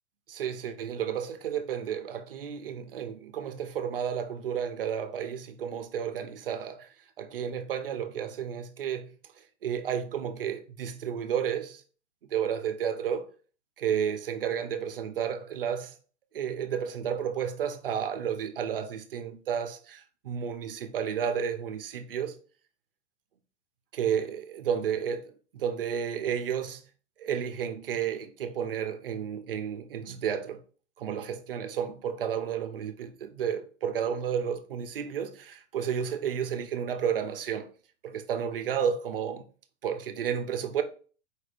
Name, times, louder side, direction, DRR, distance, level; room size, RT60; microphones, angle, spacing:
voice 1, 0.3-6.9 7.2-9.1 9.6-11.8 12.3-13.3 13.8-15.9 16.3-22.3 23.9-26.8 27.2-30.6 31.0-37.7 38.0-39.4 39.8-40.8, right 8 dB, 50° right, 0.4 m, -32 dB
4.5 x 2.4 x 3.2 m
hypercardioid pair, 175°, 39 cm